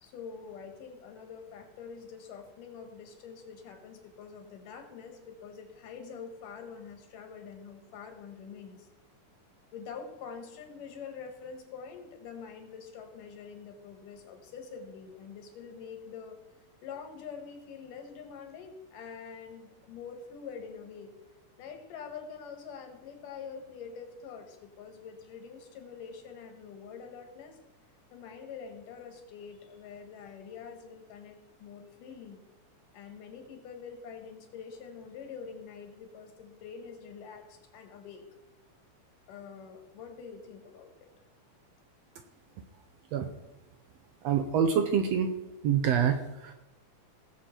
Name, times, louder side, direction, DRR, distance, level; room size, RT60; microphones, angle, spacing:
voice 1, 0.0-8.9 9.7-16.4 16.8-21.1 21.6-27.6 28.1-32.4 32.9-38.2 39.3-41.1, left 6 dB, 85° left, 5 dB, 3.2 m, -45 dB
voice 2, 44.2-45.3 45.6-46.5, right 7 dB, 75° right, 7 dB, 1.6 m, -26 dB
18.5 x 7.3 x 4.4 m, 1.0 s
omnidirectional pair, 3.6 m